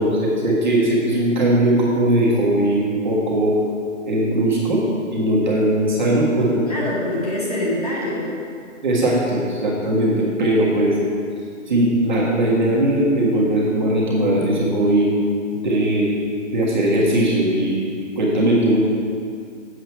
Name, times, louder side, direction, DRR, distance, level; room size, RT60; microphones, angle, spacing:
voice 1, 0.0-3.6 4.1-4.8 5.1-6.6 8.8-11.0 11.7-15.1 15.5-16.1 16.5-17.8 18.2-18.8, right 1 dB, 35° right, -5 dB, 1.6 m, -19 dB
voice 2, 6.7-8.4, left 1 dB, 30° left, -6 dB, 1.4 m, -25 dB
7.9 x 6.7 x 4.5 m, 2.2 s
hypercardioid pair, 180°, 38 cm